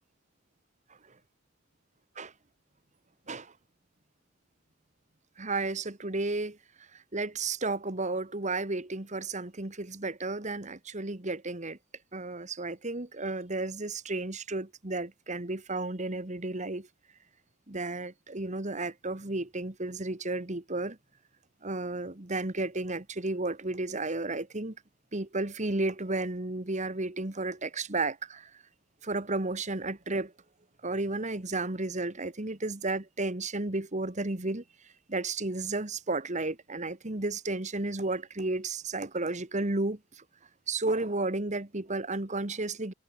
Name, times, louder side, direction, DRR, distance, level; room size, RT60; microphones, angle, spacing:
voice 1, 5.4-6.6 7.1-11.8 12.1-16.9 17.7-21.0 21.6-24.7 25.1-28.5 29.0-30.3 30.8-34.6 35.1-40.0 40.7-42.9, right 2 dB, 35° right, 1.7 m, -33 dB
head